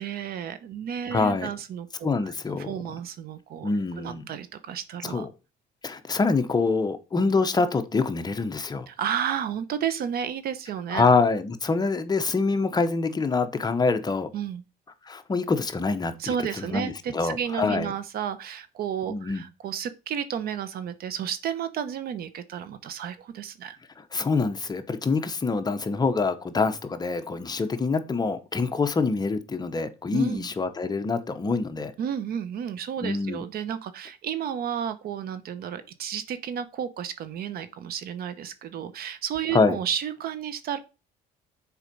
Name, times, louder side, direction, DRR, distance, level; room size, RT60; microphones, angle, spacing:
voice 1, 0.0-2.3 2.6-3.7 4.0-5.3 8.9-11.1 14.3-14.6 16.2-23.8 30.1-30.5 32.0-40.8, right 8 dB, 65° right, 0.9 m, -32 dB
voice 2, 1.1-1.5 2.0-2.7 3.6-4.2 5.0-5.3 5.8-8.9 10.9-14.3 15.0-17.9 19.1-19.4 24.0-31.9 33.0-33.4 39.5-39.8, left 4 dB, 25° left, 0.9 m, -25 dB
7.1 x 4.5 x 5.3 m
cardioid pair, 110°, 17 cm